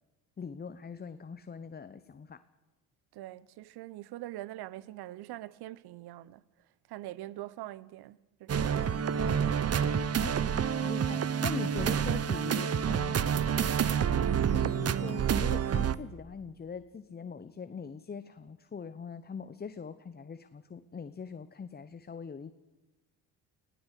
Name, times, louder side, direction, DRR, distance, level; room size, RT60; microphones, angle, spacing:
voice 1, 0.4-2.4 10.2-10.4 10.7-13.2 14.5-22.5, left 6 dB, 20° left, 0.9 m, -42 dB
voice 2, 3.1-6.4 6.9-9.3, right 16 dB, 60° right, 0.9 m, -44 dB
sound 1, 8.5-15.9, right 8 dB, 35° right, 1.0 m, -28 dB
19.5 x 16.5 x 8.3 m
hypercardioid pair, 60°, 44 cm